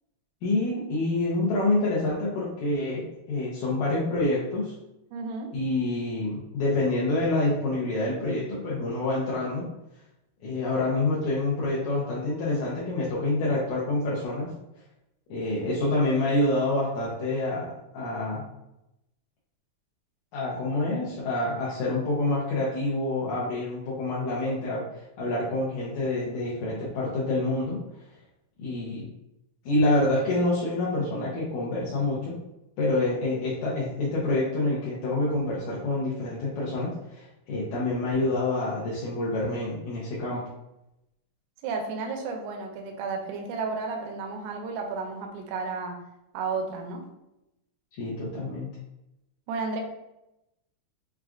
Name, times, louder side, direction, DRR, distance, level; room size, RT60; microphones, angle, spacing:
voice 1, 0.4-4.8 5.5-9.7 10.4-14.5 15.3-18.5 20.3-27.8 28.6-29.1 29.7-32.4 32.8-40.5 47.9-48.7, left 2 dB, 75° left, -6 dB, 2.0 m, -27 dB
voice 2, 5.1-5.5 41.6-46.0 46.3-47.0 49.5-49.8, right 4 dB, 80° right, 2 dB, 2.0 m, -32 dB
6.0 x 2.3 x 2.4 m, 0.89 s
omnidirectional pair, 3.6 m